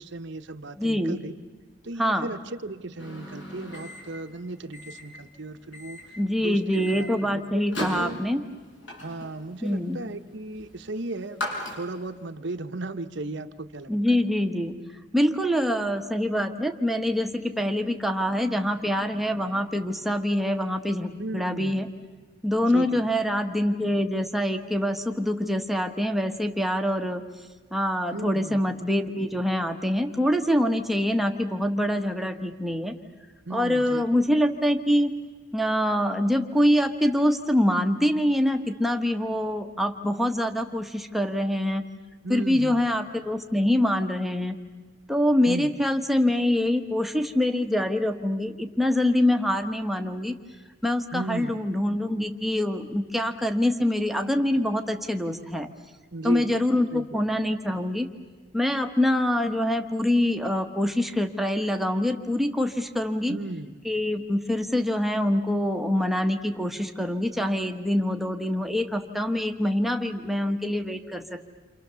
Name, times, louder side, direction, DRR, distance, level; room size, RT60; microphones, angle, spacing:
voice 1, 0.0-1.3 1.8-8.2 9.0-11.4 11.7-14.2 21.2-21.9 22.7-23.0 28.1-28.8 33.5-34.2 42.2-42.9 45.5-45.7 51.1-51.6 56.1-57.2 63.3-63.8, right 2 dB, 55° right, 8 dB, 1.0 m, -36 dB
voice 2, 0.8-1.2 2.0-2.3 6.2-8.4 9.6-10.0 13.9-14.8 15.1-21.9 22.4-27.2 27.7-33.0 33.5-35.1 35.5-41.9 42.3-44.6 45.1-50.4 50.8-55.7 56.2-58.1 58.5-63.3 63.8-71.5, left 1 dB, ahead, 4 dB, 1.2 m, -25 dB
Microwave oven, 3.0-12.2, equal, 60° left, 6.9 m, -39 dB
29.5 x 27.0 x 7.0 m, 1.4 s
head